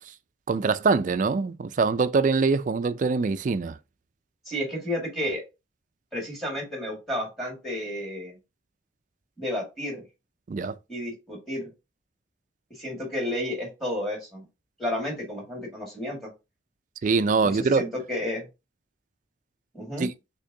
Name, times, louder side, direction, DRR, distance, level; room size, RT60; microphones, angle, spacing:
voice 1, 0.5-3.8 10.5-10.8 17.0-17.8 20.0-20.1, right 4 dB, 40° right, 0.3 m, -23 dB
voice 2, 4.5-5.4 6.1-8.4 9.4-10.0 10.9-11.7 12.7-14.5 14.8-16.3 17.4-18.5 19.7-20.1, left 1 dB, ahead, 1.8 m, -32 dB
6.4 x 3.0 x 2.6 m
head